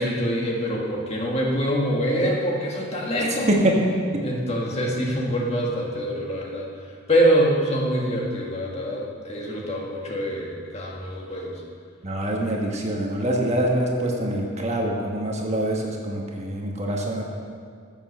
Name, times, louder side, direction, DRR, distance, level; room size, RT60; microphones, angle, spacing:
voice 1, 0.0-3.5 4.2-6.7 7.1-11.6, equal, 30° left, -2 dB, 1.8 m, -25 dB
voice 2, 3.2-3.8 4.1-4.3 12.0-17.2, right 1 dB, 30° right, 0 dB, 1.4 m, -25 dB
15.0 x 7.2 x 6.6 m, 2.2 s
head